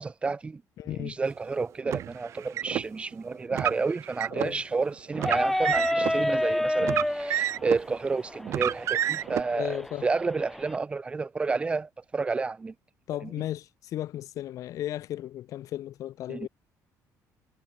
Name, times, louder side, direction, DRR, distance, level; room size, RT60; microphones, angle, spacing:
voice 1, 0.0-0.6 1.0-12.7 13.2-13.3 16.3-16.5, right 4 dB, 15° right, 1.5 m, -30 dB
voice 2, 0.8-1.2 4.3-4.6 9.5-10.1 13.1-16.5, left 13 dB, 55° left, 1.1 m, -35 dB
Car, 1.9-2.8 3.5-4.5 5.2-6.1 6.8-7.9 8.5-9.4, right 11 dB, 50° right, 0.5 m, -29 dB
sound 1, 5.1-10.8, left 1 dB, 5° left, 1.0 m, -30 dB
cardioid pair, 165°, 7 cm